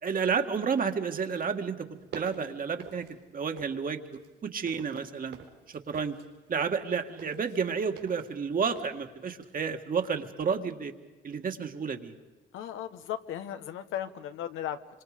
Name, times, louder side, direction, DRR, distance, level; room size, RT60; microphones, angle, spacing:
voice 1, 0.0-1.9 2.1-3.1 3.3-5.4 5.9-6.2 6.5-10.9 11.2-12.1, right 6 dB, 45° right, 6 dB, 1.9 m, -31 dB
sound 1, 1.9-3.8 4.1-9.7 10.0-10.2, right 7 dB, 75° right, 4.1 m, -48 dB
voice 2, 12.5-15.0, left 10 dB, 90° left, 9 dB, 1.2 m, -36 dB
27.0 x 25.0 x 5.1 m, 1.2 s
cardioid pair, 90°, 20 cm